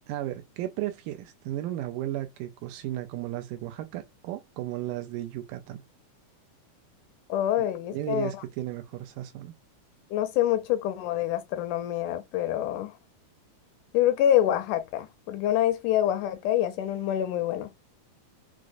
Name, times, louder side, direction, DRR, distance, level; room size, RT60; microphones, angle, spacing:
voice 1, 0.1-5.8 7.6-7.7 7.9-9.5, right 14 dB, 85° right, 2.1 m, -34 dB
voice 2, 7.3-8.3 10.1-12.9 13.9-17.7, left 12 dB, 80° left, 1.9 m, -26 dB
6.0 x 2.0 x 2.4 m
omnidirectional pair, 3.7 m